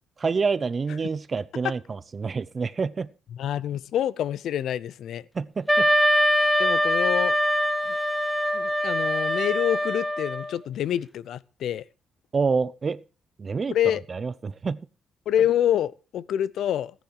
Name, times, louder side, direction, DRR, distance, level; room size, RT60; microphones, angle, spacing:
voice 1, 0.2-3.1 5.3-5.9 12.3-13.0 13.4-13.7 14.1-14.8, right 5 dB, 35° right, 0.7 m, -27 dB
voice 2, 3.3-5.2 6.6-7.3 8.5-11.8 13.7-14.0 15.3-16.9, left 10 dB, 75° left, 0.6 m, -26 dB
Wind instrument woodwind instrument, 5.7-10.6, equal, 5° left, 1.2 m, -23 dB
14.5 x 10.5 x 4.8 m
cardioid pair, 90°, 0 cm